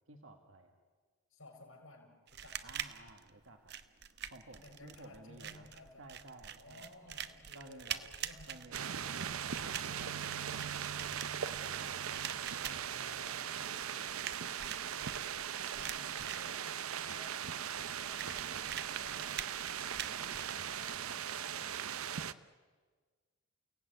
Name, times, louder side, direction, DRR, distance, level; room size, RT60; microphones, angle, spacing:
voice 1, 0.1-0.8 2.6-3.7 4.3-5.7 6.0-6.9 7.5-8.0 8.5-10.9 11.4-12.5 20.1-21.0, right 2 dB, 70° right, 4 dB, 1.7 m, -55 dB
voice 2, 1.3-2.8 4.6-6.1 6.6-8.6 11.3-14.1 14.6-19.9 20.5-22.4, left 2 dB, 75° left, 1 dB, 5.0 m, -58 dB
sound 1, 2.3-21.3, right 10 dB, 50° right, 0.9 m, -46 dB
sound 2, 8.7-22.3, right 8 dB, 90° right, 0.7 m, -39 dB
29.5 x 17.5 x 9.3 m, 1.5 s
head